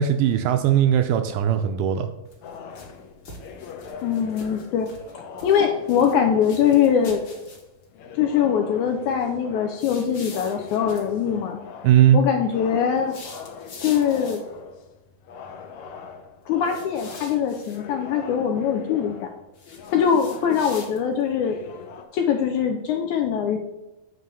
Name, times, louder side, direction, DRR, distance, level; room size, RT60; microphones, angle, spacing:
voice 1, 0.0-2.1 11.8-12.2, right 10 dB, 80° right, 7 dB, 1.9 m, -19 dB
sound 1, 2.3-2.9 3.2-5.1 5.4-6.1 6.4-7.8 9.8-11.1 13.0-14.6 16.6-17.8 19.5-21.2, left 3 dB, 45° left, 1.8 m, -44 dB
sound 2, 2.4-22.0, left 6 dB, 75° left, 1.7 m, -42 dB
voice 2, 4.0-4.9 5.1-7.2 8.2-11.6 12.1-13.2 13.8-14.4 16.5-19.3 19.9-21.6 22.1-23.6, left 8 dB, 90° left, 3 dB, 1.7 m, -22 dB
9.3 x 3.4 x 6.9 m, 0.99 s
omnidirectional pair, 4.2 m